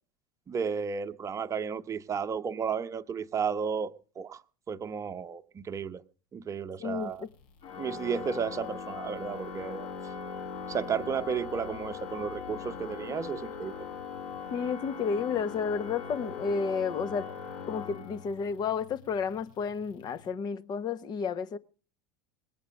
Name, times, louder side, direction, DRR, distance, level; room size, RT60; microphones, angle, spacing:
voice 1, 0.5-4.4 4.7-6.0 6.3-7.2 7.8-9.9 10.7-13.7, right 6 dB, 30° right, 1.1 m, -33 dB
voice 2, 6.8-7.3 14.5-17.3 17.7-21.6, left 6 dB, 40° left, 1.2 m, -31 dB
sound 1, 7.0-20.3, left 5 dB, 75° left, 4.3 m, -53 dB
Organ, 7.6-18.6, left 6 dB, 60° left, 3.7 m, -40 dB
20.0 x 8.7 x 6.4 m
hypercardioid pair, 85°, 11 cm